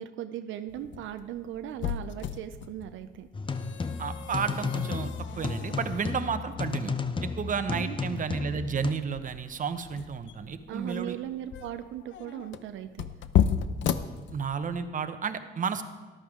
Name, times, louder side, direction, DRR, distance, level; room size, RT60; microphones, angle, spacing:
voice 1, 0.0-3.3 7.7-8.2 10.7-13.1, right 11 dB, 80° right, 8 dB, 0.5 m, -38 dB
sound 1, 0.7-14.8, left 9 dB, 70° left, 0.6 m, -34 dB
sound 2, 3.3-8.9, left 4 dB, 25° left, 0.6 m, -33 dB
voice 2, 4.0-6.9 7.2-11.2 14.3-15.8, right 6 dB, 40° right, 9 dB, 0.8 m, -32 dB
14.0 x 11.5 x 3.6 m, 1.3 s
cardioid pair, 90°, 20 cm